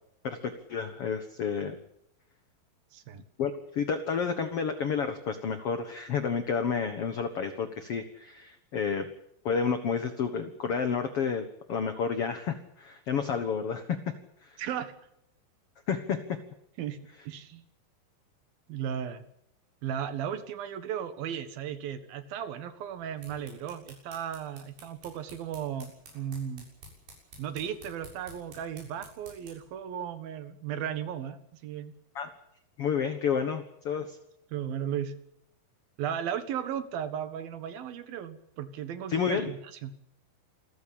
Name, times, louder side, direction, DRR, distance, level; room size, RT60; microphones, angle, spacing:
voice 1, 0.2-1.8 3.4-9.1 9.4-14.0 14.4-14.6 15.9-16.2 32.1-32.3 32.8-34.2 39.1-39.5, left 6 dB, 60° left, 8 dB, 1.6 m, -30 dB
voice 2, 2.9-3.2 14.6-14.9 16.8-17.6 18.7-19.2 19.8-26.7 27.4-31.9 34.5-35.2 36.0-39.9, right 9 dB, 70° right, 11 dB, 3.2 m, -35 dB
sound 1, 22.9-29.7, right 2 dB, 85° right, 9.2 m, -52 dB
27.5 x 15.0 x 8.8 m, 0.77 s
omnidirectional pair, 4.6 m